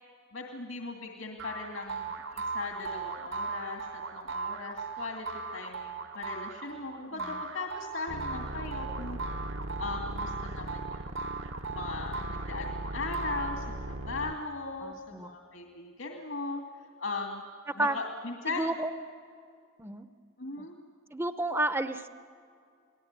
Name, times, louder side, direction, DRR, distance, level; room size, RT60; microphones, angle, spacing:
voice 1, 0.3-9.2 9.8-11.3 11.7-16.6 17.0-17.4 17.8-18.7 20.4-20.8, left 3 dB, 75° left, 2 dB, 2.5 m, -38 dB
sound 1, 1.4-13.9, right 4 dB, 85° right, 3.7 m, -38 dB
voice 2, 7.0-7.4 14.8-15.3 17.7-18.0 18.5-19.0 19.8-20.1 20.6-20.7 21.1-22.1, right 2 dB, 10° right, 10 dB, 0.7 m, -32 dB
sound 2, 8.1-14.4, right 1 dB, 65° right, 1.1 m, -38 dB
30.0 x 19.5 x 9.7 m, 2.4 s
head